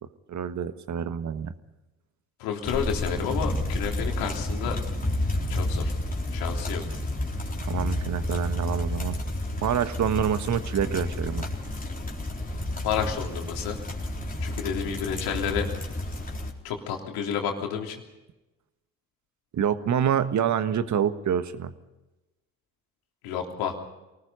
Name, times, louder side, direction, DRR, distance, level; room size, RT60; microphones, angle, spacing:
voice 1, 0.3-1.5 7.6-9.2 9.6-11.4 19.5-21.7, right 8 dB, 45° right, 12 dB, 1.5 m, -26 dB
voice 2, 2.4-4.8 5.5-5.9 6.3-6.8 12.8-13.8 14.4-15.7 16.6-18.0 23.2-23.8, left 8 dB, 70° left, 2 dB, 3.3 m, -30 dB
sound 1, 2.6-16.5, left 1 dB, 20° left, 4.0 m, -30 dB
25.0 x 19.5 x 5.5 m, 1.0 s
hypercardioid pair, 55°, 39 cm